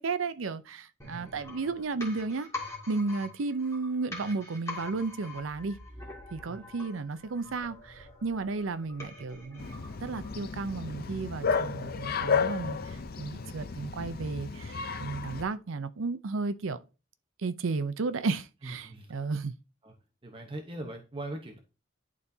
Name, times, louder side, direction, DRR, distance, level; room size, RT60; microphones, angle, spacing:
voice 1, 0.0-2.5 2.9-5.8 6.3-9.7 10.0-16.8 17.4-19.5, right 4 dB, 85° right, 0.6 m, -33 dB
sound 1, 1.0-10.7 11.0-11.1, left 3 dB, 15° left, 2.1 m, -45 dB
voice 2, 1.1-1.4 6.5-6.7 18.6-19.1 19.8-19.9 20.2-21.6, right 1 dB, 25° right, 0.8 m, -41 dB
Bark, 9.6-15.4, left 5 dB, 50° left, 0.6 m, -33 dB
11.0 x 4.1 x 2.7 m
head